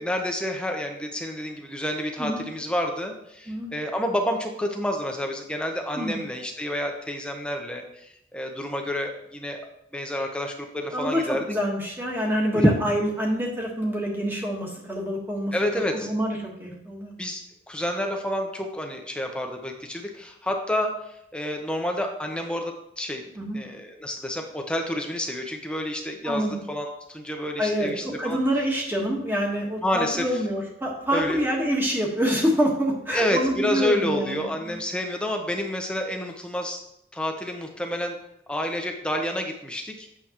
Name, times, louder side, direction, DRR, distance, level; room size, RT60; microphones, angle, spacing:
voice 1, 0.0-7.8 8.3-9.6 9.9-11.4 12.5-12.8 15.5-16.1 17.2-17.4 17.7-21.0 21.3-23.2 23.5-28.4 29.8-30.2 31.1-31.4 33.1-36.8 37.1-38.2 38.5-40.1, left 1 dB, 5° left, 2 dB, 0.7 m, -29 dB
voice 2, 10.9-17.1 23.3-23.6 26.2-26.6 27.6-34.8, equal, 10° right, -2 dB, 1.4 m, -26 dB
8.6 x 6.9 x 3.0 m, 0.78 s
head